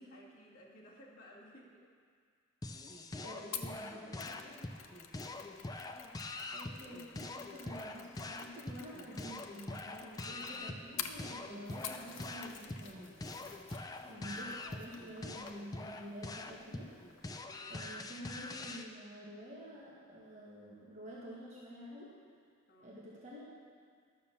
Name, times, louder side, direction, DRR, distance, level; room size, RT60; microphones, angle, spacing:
voice 1, 0.1-1.9 3.8-5.1 10.1-10.5 14.0-14.1 22.7-22.9, left 1 dB, 45° left, -8 dB, 2.4 m, -58 dB
sound 1, 2.6-18.9, left 2 dB, 20° left, 0.4 m, -44 dB
voice 2, 3.2-4.3 6.5-13.1 14.0-17.0 17.7-22.1 22.8-23.5, equal, 35° right, -7 dB, 1.8 m, -49 dB
Mechanisms, 3.5-12.1 12.4-12.9 13.1-13.3, left 8 dB, 85° left, 0.7 m, -48 dB
sound 2, 10.3-17.4, left 3 dB, 70° left, 1.3 m, -59 dB
12.0 x 6.8 x 6.7 m, 2.1 s
head